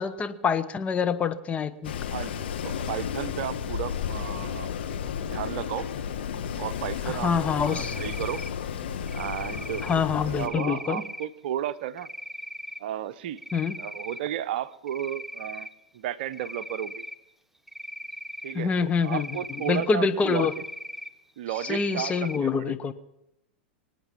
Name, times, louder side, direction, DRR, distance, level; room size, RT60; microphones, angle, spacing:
voice 1, 0.0-1.9 7.1-8.0 9.8-11.0 13.5-13.7 18.5-19.3 19.7-20.5 21.7-22.9, left 5 dB, 20° left, 9 dB, 1.0 m, -26 dB
Wind, 1.8-10.5, left 8 dB, 70° left, 1.4 m, -33 dB
voice 2, 2.1-4.7 5.2-5.9 6.6-8.4 9.1-12.1 12.8-13.4 13.8-15.7 15.9-17.0 18.4-20.5 21.4-22.7, right 11 dB, 60° right, 15 dB, 0.7 m, -34 dB
Cricket, 7.6-8.5 9.1-9.9 10.4-11.2 12.0-12.8 13.2-14.2 14.6-15.7 16.3-17.1 17.7-18.5 19.0-19.9 20.3-21.1 21.5-22.4, equal, 5° right, 0.8 m, -39 dB
24.0 x 9.0 x 5.9 m, 0.87 s
hypercardioid pair, 100°, 6 cm